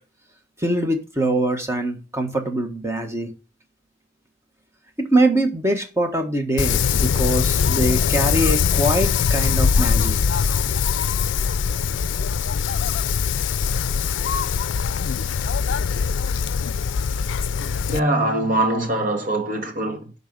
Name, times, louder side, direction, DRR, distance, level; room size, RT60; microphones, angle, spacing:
voice 1, 0.6-3.3 5.0-10.1, right 1 dB, 15° right, 1.4 m, -23 dB
Wind, 6.6-18.0, left 6 dB, 80° left, 0.4 m, -22 dB
voice 2, 17.9-20.1, right 1 dB, 45° right, 1.9 m, -22 dB
11.5 x 4.1 x 5.4 m
head